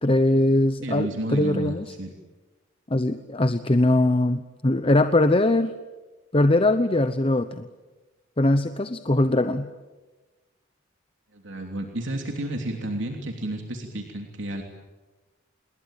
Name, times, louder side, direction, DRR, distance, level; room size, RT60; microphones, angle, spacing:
voice 1, 0.0-1.9 2.9-5.7 6.3-7.7 8.4-9.7, left 1 dB, 30° left, 10 dB, 0.9 m, -21 dB
voice 2, 0.8-2.1 11.3-14.6, right 1 dB, 70° right, 2 dB, 3.1 m, -31 dB
28.5 x 21.5 x 9.1 m, 1.2 s
head